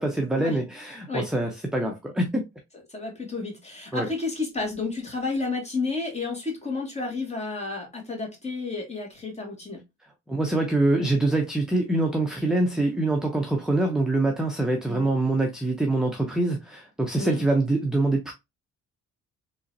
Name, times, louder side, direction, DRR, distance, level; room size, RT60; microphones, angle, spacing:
voice 1, 0.0-2.4 3.9-4.1 10.3-18.3, right 2 dB, ahead, 0.6 m, -24 dB
voice 2, 2.9-9.8 14.8-15.1 17.2-17.4, left 3 dB, 20° left, 1.9 m, -31 dB
3.8 x 3.0 x 2.6 m
cardioid pair, 90°, 30 cm